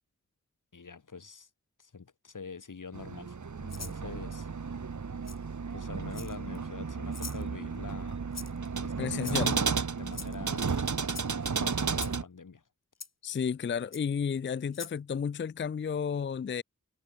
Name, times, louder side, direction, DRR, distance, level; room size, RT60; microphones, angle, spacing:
voice 1, 0.7-1.5 1.8-4.5 5.7-8.2 8.8-10.7 11.5-12.6, left 5 dB, 90° left, 2.1 m, -45 dB
sound 1, 2.9-12.2, right 5 dB, 70° right, 1.4 m, -33 dB
Rattle (instrument), 3.7-4.0 5.2-5.4 6.1-6.6 7.1-7.4 8.3-8.7 9.2-9.6 10.1-10.4 11.1-11.3 12.0-12.2 13.0-13.1 13.9-14.0 14.7-15.0, left 4 dB, 55° left, 1.7 m, -43 dB
voice 2, 9.0-9.6 13.2-16.6, left 7 dB, 40° left, 0.4 m, -32 dB
wide cardioid pair, 60°, 30 cm